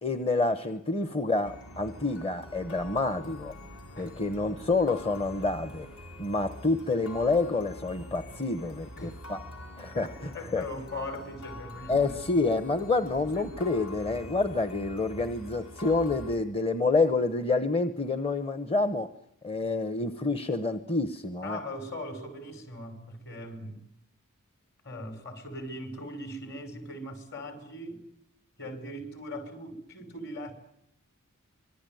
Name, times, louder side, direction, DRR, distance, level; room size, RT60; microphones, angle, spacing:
voice 1, 0.0-3.5 4.0-5.9 6.2-9.4 9.8-10.6 11.9-19.1 19.4-21.6, left 3 dB, 25° left, 1.0 m, -28 dB
sound 1, 1.4-16.4, left 1 dB, 70° left, 5.6 m, -45 dB
voice 2, 10.3-12.1 13.3-13.5 21.4-23.8 24.8-28.0 28.6-30.5, left 1 dB, 50° left, 6.0 m, -40 dB
25.5 x 23.0 x 9.3 m
head